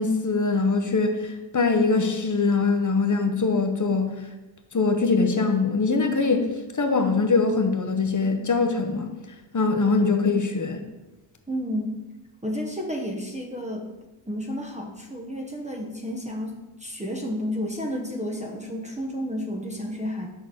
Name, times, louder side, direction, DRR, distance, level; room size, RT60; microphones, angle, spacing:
voice 1, 0.0-4.1 4.7-6.5 6.8-9.1 9.5-10.8, left 4 dB, 40° left, 6 dB, 0.9 m, -22 dB
voice 2, 11.5-12.0 12.4-13.8 14.3-20.3, equal, 15° right, 0 dB, 0.9 m, -31 dB
6.6 x 3.9 x 6.2 m, 1.1 s
wide cardioid pair, 85°, 47 cm